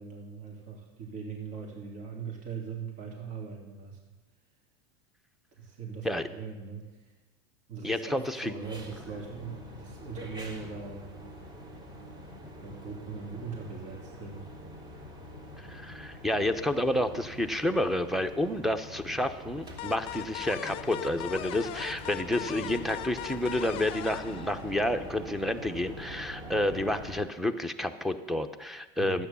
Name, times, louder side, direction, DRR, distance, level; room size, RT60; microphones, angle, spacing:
voice 1, 0.0-4.0 5.5-7.1 7.7-11.1 12.0-12.2 12.6-14.5 29.0-29.2, right 5 dB, 60° right, 0 dB, 2.8 m, -40 dB
voice 2, 7.8-8.5 15.7-29.3, left 1 dB, ahead, 4 dB, 0.8 m, -30 dB
sound 1, 8.6-27.2, equal, 35° right, 3.0 m, -45 dB
sound 2, 19.8-25.2, left 16 dB, 45° left, 0.5 m, -40 dB
12.5 x 9.3 x 7.0 m, 1.1 s
supercardioid pair, 130°, 13 cm